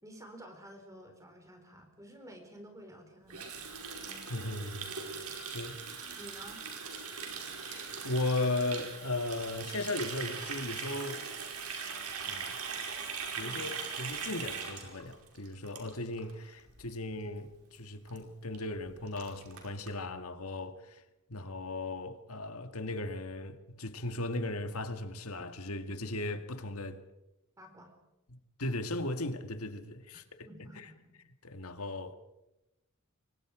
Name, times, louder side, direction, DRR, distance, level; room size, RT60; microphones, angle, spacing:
voice 1, 0.0-3.7 6.2-6.7 13.4-13.6 27.6-27.9 30.1-31.1, equal, 15° right, 4.2 m, -51 dB
Water tap faucet, 3.3-16.3 16.6-16.8 17.1-17.5 17.8-17.9 18.1-18.2 18.5-18.6 18.8-19.9, right 5 dB, 80° right, 5.0 m, -40 dB
voice 2, 4.3-4.9 5.3-5.8 7.6-11.2 12.2-12.6 13.4-21.0 21.3-27.0 28.3-30.5 30.8-30.9 31.4-32.1, left 2 dB, 75° left, 1.9 m, -37 dB
27.5 x 23.5 x 5.0 m
head